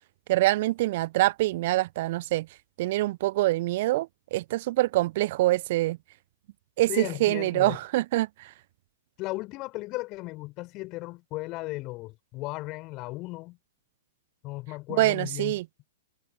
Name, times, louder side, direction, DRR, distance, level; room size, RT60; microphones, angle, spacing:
voice 1, 0.3-2.5 2.8-6.0 6.8-8.5 14.9-15.6, right 17 dB, 45° right, 1.2 m, -25 dB
voice 2, 6.9-7.8 9.2-13.6 14.4-15.6, left 21 dB, 35° left, 6.6 m, -36 dB
figure-of-eight pair, 105°, 0 cm